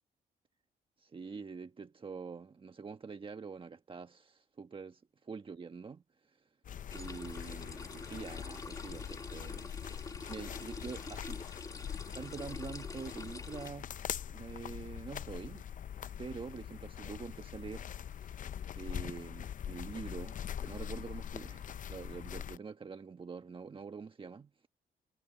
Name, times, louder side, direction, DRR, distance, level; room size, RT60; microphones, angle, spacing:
voice 1, 1.0-6.5 6.9-9.7 10.3-11.5 12.1-13.9 14.3-15.7 16.2-17.9 18.2-18.3 18.7-24.7, right 5 dB, 35° right, 1.3 m, -45 dB
sound 1, 6.6-22.6, left 9 dB, 55° left, 0.7 m, -43 dB
sound 2, 6.9-13.7, left 3 dB, 20° left, 2.1 m, -47 dB
cardioid pair, 85°, 16 cm